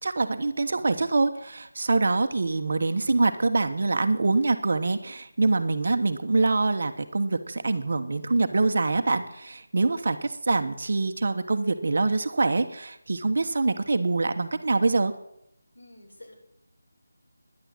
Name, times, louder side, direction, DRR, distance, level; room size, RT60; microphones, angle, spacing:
voice 1, 0.0-15.1, right 3 dB, 55° right, 8 dB, 1.1 m, -25 dB
voice 2, 15.7-16.3, left 1 dB, 85° left, -2 dB, 6.8 m, -48 dB
10.5 x 10.0 x 7.6 m, 0.76 s
figure-of-eight pair, 170°, 0 cm